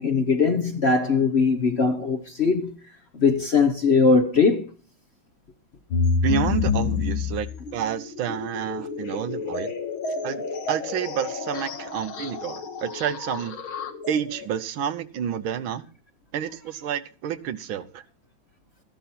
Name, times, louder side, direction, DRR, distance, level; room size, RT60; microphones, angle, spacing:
voice 1, 0.0-2.8 3.1-4.7, left 4 dB, 45° left, 0.9 m, -20 dB
sound 1, 5.9-14.5, left 5 dB, 85° left, 2.3 m, -29 dB
voice 2, 6.2-9.7 10.2-13.5 14.1-15.8 16.3-18.0, right 9 dB, 80° right, 1.7 m, -29 dB
14.0 x 11.5 x 4.3 m
omnidirectional pair, 2.2 m